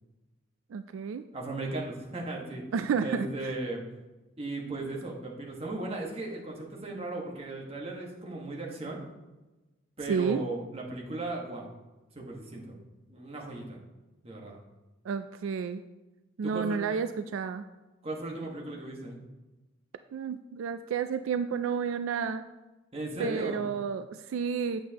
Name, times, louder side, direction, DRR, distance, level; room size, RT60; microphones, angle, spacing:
voice 1, 0.7-1.2 2.7-3.5 10.1-10.4 15.0-15.8 16.4-17.6 20.1-22.4 23.2-24.8, right 6 dB, 80° right, 10 dB, 0.3 m, -31 dB
voice 2, 1.3-2.6 3.0-3.8 4.4-9.0 10.0-11.7 12.1-12.8 13.1-13.8 14.2-14.6 16.4-16.8 18.0-19.2 22.9-23.7, right 2 dB, 30° right, -2 dB, 1.4 m, -36 dB
8.3 x 7.4 x 2.9 m, 1.1 s
head